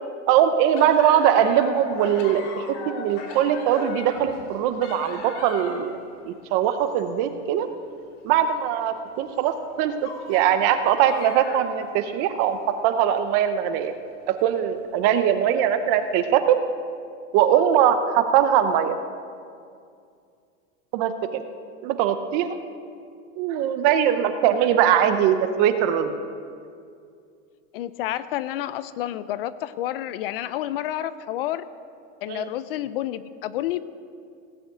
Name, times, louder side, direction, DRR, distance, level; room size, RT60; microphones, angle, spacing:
voice 1, 0.3-5.9 6.2-7.7 8.2-13.9 14.3-16.6 17.3-19.0 20.9-21.4 21.8-22.6 23.4-26.2 32.3-32.5, right 9 dB, 35° right, 10 dB, 0.6 m, -21 dB
sound 1, 0.7-5.9 6.6-7.1 7.6-7.7 8.3-8.4 9.3-9.7 10.0-12.8 13.2-13.3 14.3-14.5 15.4-15.6 16.0-16.1, left 4 dB, 65° left, 2.9 m, -39 dB
voice 2, 27.7-31.7 32.2-33.8, left 13 dB, 50° left, 15 dB, 0.5 m, -29 dB
17.0 x 6.4 x 8.2 m, 2.3 s
supercardioid pair, 165°, 37 cm